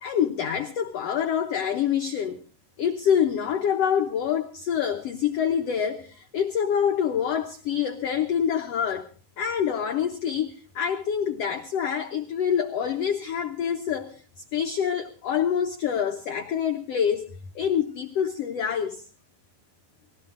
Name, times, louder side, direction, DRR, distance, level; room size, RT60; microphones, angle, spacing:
voice 1, 0.0-2.4 2.8-9.1 9.4-14.2 14.5-17.3 17.5-19.0, left 8 dB, 90° left, 1.3 m, -26 dB
19.5 x 16.0 x 3.7 m
omnidirectional pair, 4.1 m